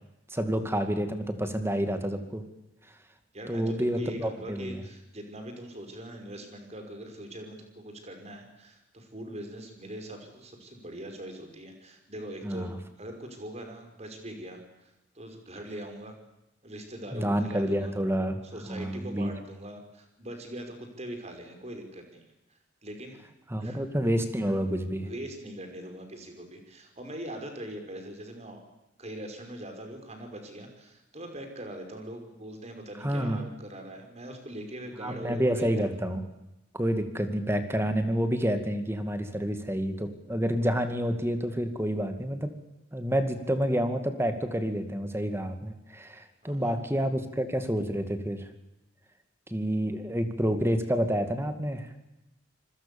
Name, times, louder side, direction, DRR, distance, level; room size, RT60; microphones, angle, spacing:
voice 1, 0.3-2.4 3.5-4.8 12.4-12.8 17.1-18.4 18.7-19.3 23.5-25.1 33.0-33.4 35.0-36.2 36.7-42.5 42.9-48.4 49.5-52.0, equal, 15° right, 8 dB, 2.3 m, -29 dB
voice 2, 3.3-12.7 13.0-16.1 16.6-17.9 18.5-22.3 22.8-23.2 23.6-23.8 25.0-28.6 29.0-35.9 46.4-46.8, right 1 dB, 35° right, 5 dB, 5.8 m, -42 dB
27.5 x 21.0 x 7.2 m, 0.92 s
head